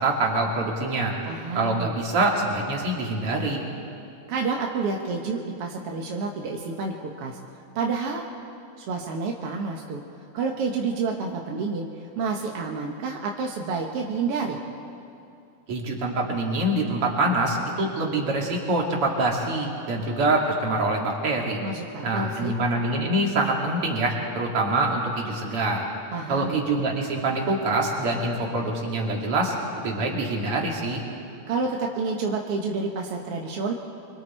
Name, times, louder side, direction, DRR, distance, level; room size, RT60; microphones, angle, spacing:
voice 1, 0.0-1.2 1.5-3.6 15.7-21.6 22.0-25.9 26.3-29.5 29.8-31.0, right 2 dB, 45° right, -2 dB, 3.3 m, -25 dB
voice 2, 1.3-1.9 4.3-7.4 7.7-8.2 8.8-10.0 10.3-11.9 12.2-14.6 21.6-22.5 26.1-26.6 31.5-33.7, right 4 dB, 60° right, 0 dB, 1.7 m, -29 dB
26.5 x 24.5 x 4.5 m, 2.6 s
omnidirectional pair, 3.8 m